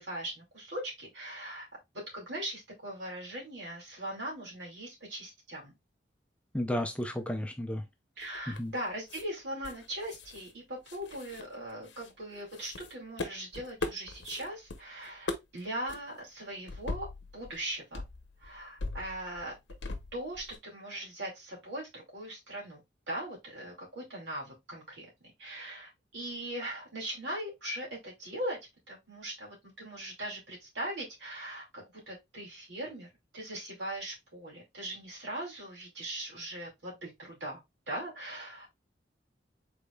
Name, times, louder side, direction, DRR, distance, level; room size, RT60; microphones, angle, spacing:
voice 1, 0.0-1.7 1.9-5.7 8.2-17.1 17.3-18.0 18.4-19.5 20.1-22.8 23.1-28.6 28.9-37.6 37.9-38.7, right 1 dB, 70° right, 2.6 m, -40 dB
voice 2, 6.5-7.8 8.5-8.7, left 1 dB, 5° left, 0.5 m, -33 dB
sound 1, 8.2-8.8 9.1-9.2 9.6-10.5 10.8-12.1 12.5-14.8 15.0-15.6 15.9-16.0 16.7-17.6 17.9-20.6, left 2 dB, 70° left, 0.7 m, -40 dB
5.1 x 3.9 x 2.2 m
head